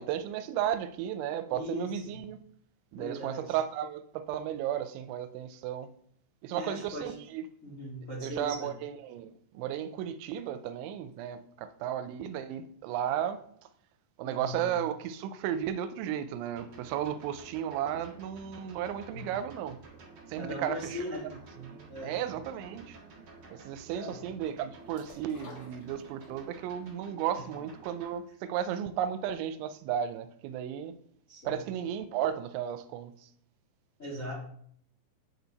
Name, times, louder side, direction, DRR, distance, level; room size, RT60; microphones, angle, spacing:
voice 1, 0.0-2.4 2.9-5.9 6.4-7.4 8.2-13.4 14.2-19.8 20.3-21.0 21.6-23.0 23.5-31.0 31.4-33.3, right 10 dB, 85° right, 2.9 m, -34 dB
voice 2, 1.5-2.2 2.9-3.5 6.5-7.1 7.6-8.7 14.2-14.8 19.1-19.2 20.3-21.3 21.9-22.2 23.9-24.1 31.3-31.5 34.0-34.3, left 1 dB, 85° left, 0.7 m, -39 dB
sound 1, 16.4-28.1, right 4 dB, 55° right, 1.4 m, -52 dB
sound 2, 24.9-26.5 26.9-27.0, left 4 dB, 45° left, 2.4 m, -51 dB
9.9 x 4.4 x 4.0 m
omnidirectional pair, 5.3 m